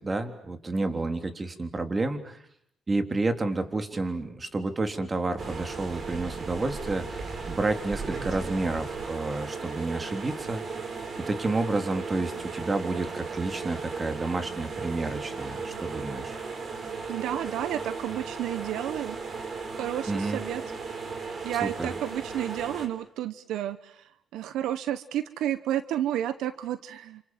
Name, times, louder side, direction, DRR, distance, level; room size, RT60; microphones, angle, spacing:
voice 1, 0.0-2.4 2.9-10.6 11.2-16.4 20.1-20.4 21.6-21.9, right 2 dB, 25° right, 7 dB, 3.5 m, -30 dB
sound 1, 5.4-22.9, right 4 dB, 45° right, 5.4 m, -36 dB
voice 2, 17.1-19.2 19.7-20.6 21.4-27.2, right 11 dB, 85° right, 13 dB, 1.1 m, -31 dB
29.0 x 27.5 x 7.4 m, 0.69 s
cardioid pair, 90°, 0 cm